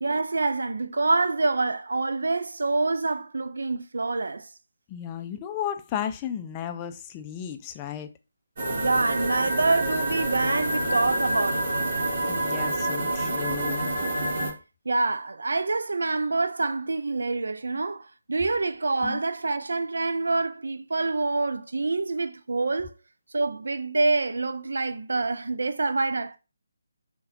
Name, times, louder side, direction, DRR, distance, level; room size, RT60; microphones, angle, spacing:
voice 1, 0.0-4.5 8.7-11.7 14.9-22.9 23.3-26.4, right 3 dB, 65° right, 0.4 m, -26 dB
voice 2, 4.9-8.1 12.3-13.8 19.0-19.2, left 9 dB, 20° left, 0.3 m, -34 dB
sound 1, 8.6-14.5, right 1 dB, 40° right, 1.5 m, -27 dB
5.5 x 2.2 x 2.4 m
figure-of-eight pair, 150°, 0 cm